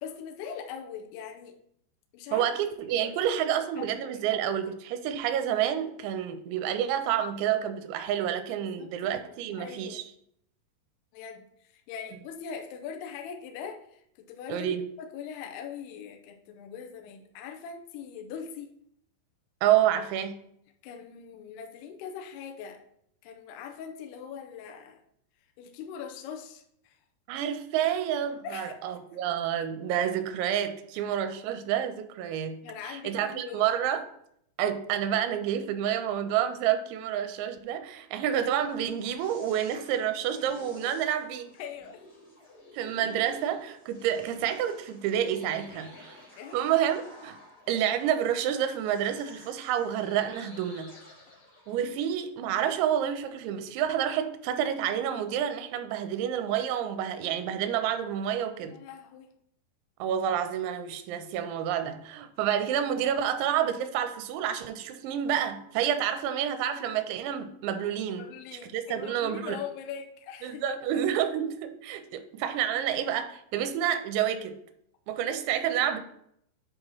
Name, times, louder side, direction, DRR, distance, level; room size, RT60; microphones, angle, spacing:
voice 1, 0.0-1.6 2.1-2.5 3.0-4.3 8.6-10.0 11.1-18.7 20.8-22.8 23.2-25.0 25.6-27.0 28.4-28.7 32.6-33.7 39.5-39.6 41.5-42.1 46.4-46.6 58.6-59.3 68.2-70.6, left 7 dB, 75° left, 3 dB, 2.5 m, -42 dB
voice 2, 2.3-10.0 14.5-14.9 19.6-20.4 27.3-32.6 32.9-34.0 34.6-41.5 42.7-46.2 46.5-47.4 47.7-50.9 51.7-58.8 60.0-68.2 68.7-69.6 70.4-74.6 75.1-76.0, right 10 dB, 85° right, 9 dB, 2.9 m, -29 dB
sound 1, 38.1-52.3, left 1 dB, 55° left, 0.9 m, -51 dB
8.0 x 3.0 x 5.3 m, 0.71 s
omnidirectional pair, 5.3 m